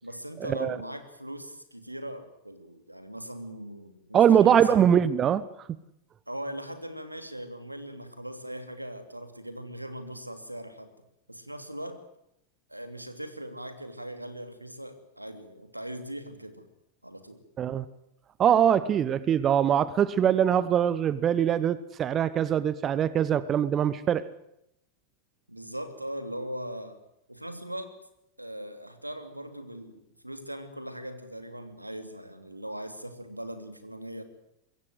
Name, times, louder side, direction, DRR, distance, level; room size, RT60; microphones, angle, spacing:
voice 1, 0.0-4.8 6.3-10.9 11.3-12.0 12.7-16.7 17.0-17.4 25.5-27.0 27.3-28.0 28.4-34.2, right 1 dB, 85° right, 2.9 m, -40 dB
voice 2, 4.1-5.5 17.6-17.8 18.4-24.3, right 9 dB, 25° right, 1.0 m, -22 dB
24.5 x 22.0 x 8.0 m
figure-of-eight pair, 90°, 0 cm